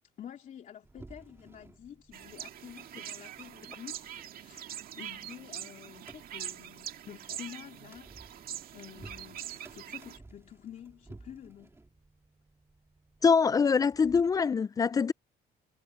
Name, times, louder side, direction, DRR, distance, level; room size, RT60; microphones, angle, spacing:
voice 1, 0.2-11.8, left 10 dB, 50° left, 2.6 m, -49 dB
sound 1, 0.8-14.5, right 2 dB, 15° right, 3.7 m, -56 dB
sound 2, 2.1-10.2, right 11 dB, 60° right, 2.2 m, -43 dB
voice 2, 13.2-15.1, left 5 dB, 20° left, 0.3 m, -24 dB
cardioid pair, 110°, 17 cm